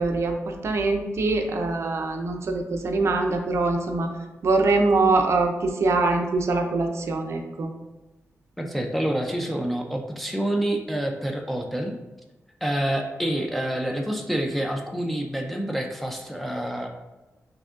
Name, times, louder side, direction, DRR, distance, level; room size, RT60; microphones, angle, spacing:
voice 1, 0.0-4.1 4.4-7.7, right 3 dB, 60° right, 4 dB, 0.5 m, -23 dB
voice 2, 8.6-12.0 12.6-16.9, right 1 dB, ahead, 2 dB, 0.3 m, -27 dB
5.9 x 2.6 x 2.4 m, 1.1 s
wide cardioid pair, 170°, 5 cm